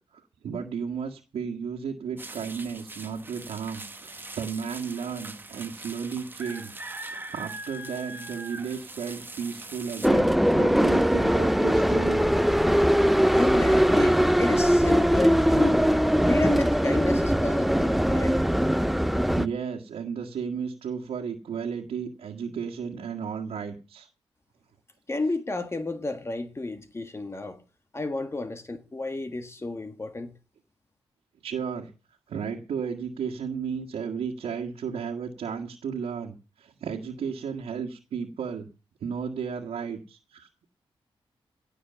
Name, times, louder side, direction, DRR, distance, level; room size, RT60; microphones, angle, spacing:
voice 1, 0.4-6.7 7.0-12.2 19.4-24.1 31.4-31.9 32.3-38.7 39.0-40.7, right 6 dB, 85° right, 1.8 m, -34 dB
sound 1, 2.2-10.1, right 2 dB, 20° right, 1.4 m, -41 dB
sound 2, 10.0-19.5, equal, ahead, 0.6 m, -21 dB
voice 2, 13.3-15.9 16.3-18.4 25.1-27.6 27.9-30.4, left 2 dB, 25° left, 1.6 m, -31 dB
17.0 x 6.5 x 7.0 m
cardioid pair, 85°, 10 cm